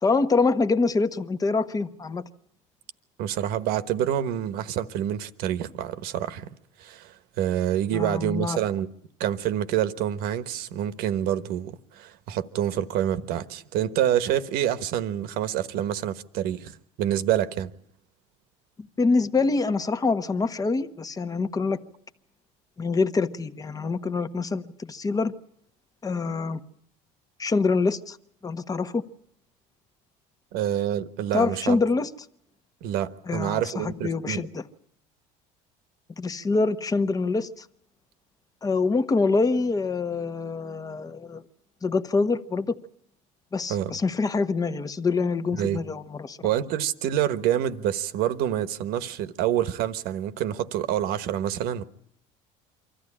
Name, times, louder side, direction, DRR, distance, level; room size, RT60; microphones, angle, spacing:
voice 1, 0.0-2.2 7.9-8.6 19.0-21.8 22.8-25.3 26.0-26.6 27.4-28.2 28.4-29.0 31.3-32.1 33.3-34.6 36.2-37.6 38.6-41.4 41.8-42.7 43.5-46.5, left 4 dB, 20° left, 1.2 m, -25 dB
voice 2, 3.2-6.5 6.8-8.9 9.2-17.7 30.5-31.8 32.8-34.5 43.7-44.0 45.5-45.8 46.4-51.8, right 11 dB, 70° right, 1.3 m, -27 dB
24.5 x 14.5 x 9.9 m
supercardioid pair, 105°, 16 cm